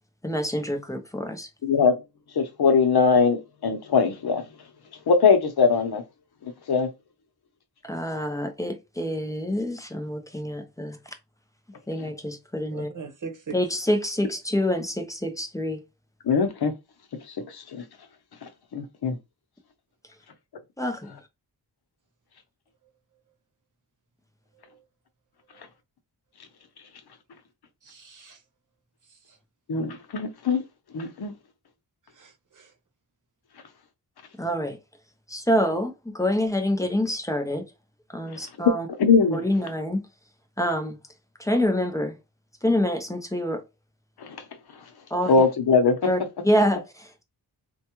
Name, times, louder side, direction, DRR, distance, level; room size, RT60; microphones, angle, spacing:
voice 1, 0.2-1.5 7.8-11.0 11.9-12.9 13.5-15.8 20.8-21.2 34.4-34.8 35.3-37.7 38.1-38.9 39.3-40.0 40.6-41.0 41.4-42.1 42.6-43.6 45.1-45.4 46.0-47.2, equal, 10° left, 0.5 m, -26 dB
voice 2, 1.6-2.0 2.3-4.4 5.1-6.0 6.7-6.9 16.3-16.7 17.7-17.8 18.7-19.2 29.7-30.6 30.9-31.3 39.0-39.4 45.3-46.0, left 5 dB, 70° left, 0.8 m, -21 dB
voice 3, 12.7-13.6 27.8-28.4 32.1-32.7, right 5 dB, 50° right, 0.9 m, -40 dB
4.4 x 2.3 x 2.9 m
wide cardioid pair, 150°, 40 cm